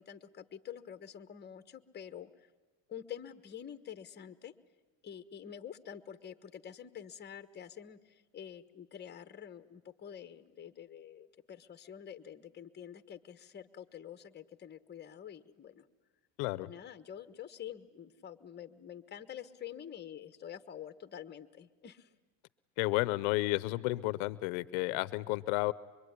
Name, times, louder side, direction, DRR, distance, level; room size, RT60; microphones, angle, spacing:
voice 1, 0.0-2.5 2.9-4.5 5.0-15.9 16.6-22.1, left 9 dB, 25° left, 11 dB, 1.3 m, -47 dB
voice 2, 22.8-25.7, left 20 dB, 85° left, 17 dB, 0.8 m, -32 dB
25.0 x 23.0 x 9.7 m, 1.3 s
cardioid pair, 120°, 39 cm